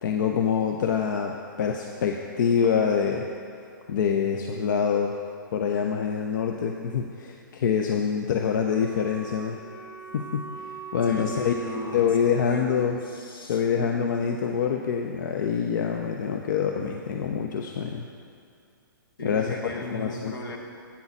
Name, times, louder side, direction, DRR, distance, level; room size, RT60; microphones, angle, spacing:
voice 1, 0.0-3.2 3.9-5.2 5.5-9.6 10.1-11.5 11.9-13.0 13.5-18.1 19.2-20.3, left 7 dB, 60° left, 2 dB, 0.6 m, -26 dB
Wind instrument woodwind instrument, 8.6-13.0, right 5 dB, 20° left, 1.4 m, -41 dB
voice 2, 11.1-13.9 19.2-20.6, left 1 dB, 80° left, 2 dB, 1.2 m, -37 dB
8.4 x 4.0 x 6.9 m, 2.5 s
hypercardioid pair, 130°, 11 cm